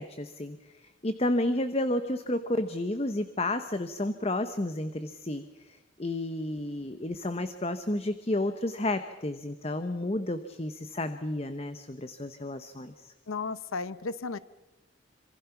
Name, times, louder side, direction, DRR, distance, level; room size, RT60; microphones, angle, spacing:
voice 1, 0.0-13.1, left 1 dB, 30° left, 10 dB, 0.9 m, -31 dB
voice 2, 13.3-14.4, left 4 dB, 90° left, 16 dB, 0.8 m, -34 dB
27.0 x 26.0 x 5.9 m, 1.0 s
head